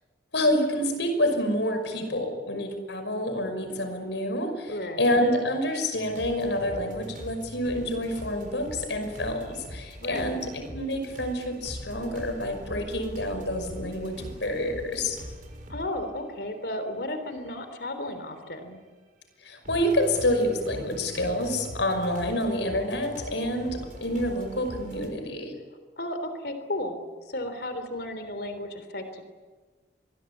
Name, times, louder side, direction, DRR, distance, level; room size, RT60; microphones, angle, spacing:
voice 1, 0.3-15.2 19.4-25.5, left 1 dB, 85° left, 7 dB, 5.8 m, -28 dB
voice 2, 4.7-5.2 10.0-10.4 15.7-18.8 26.0-27.0 27.3-29.2, left 1 dB, 60° left, 9 dB, 3.5 m, -34 dB
sound 1, 5.9-15.9 16.5-16.6 17.5-17.6 19.6-25.1, equal, 50° right, 6.1 m, -42 dB
25.5 x 21.5 x 8.7 m, 1.4 s
head